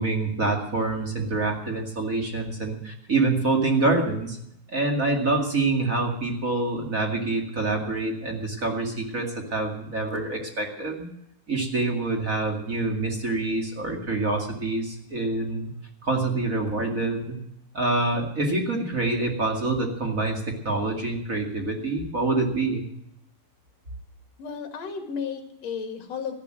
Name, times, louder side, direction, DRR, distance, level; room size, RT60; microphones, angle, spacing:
voice 1, 0.0-4.4 4.7-11.1 11.5-15.7 16.0-17.4 17.7-22.8, right 3 dB, 30° right, 2 dB, 2.0 m, -26 dB
voice 2, 24.4-26.3, left 6 dB, 50° left, 4 dB, 3.0 m, -33 dB
14.5 x 11.0 x 7.7 m, 0.77 s
omnidirectional pair, 4.0 m